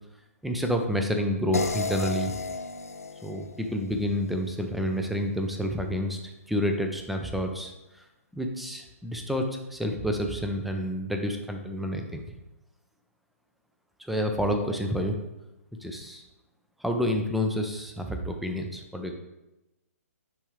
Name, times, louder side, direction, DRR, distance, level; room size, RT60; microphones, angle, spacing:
voice 1, 0.4-2.3 3.2-6.2 6.5-8.0 8.3-12.2 14.0-15.2 15.8-16.2 16.8-19.1, equal, ahead, 4 dB, 0.5 m, -29 dB
sound 1, 1.5-4.6, left 4 dB, 75° left, 0.4 m, -33 dB
9.6 x 3.5 x 3.1 m, 0.98 s
figure-of-eight pair, 125°, 8 cm